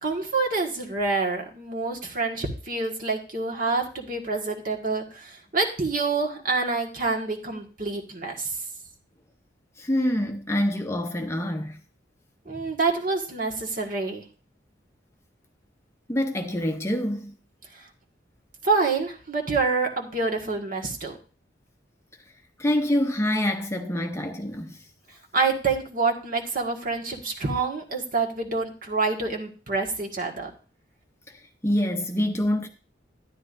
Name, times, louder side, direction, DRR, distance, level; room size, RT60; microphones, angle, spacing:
voice 1, 0.0-8.5 12.4-14.2 18.6-21.2 25.3-30.5, right 3 dB, 50° right, 1.7 m, -27 dB
voice 2, 9.8-11.8 12.5-12.6 16.1-17.3 22.6-24.8 31.3-32.7, left 1 dB, 15° left, 0.7 m, -26 dB
12.5 x 9.9 x 2.6 m
head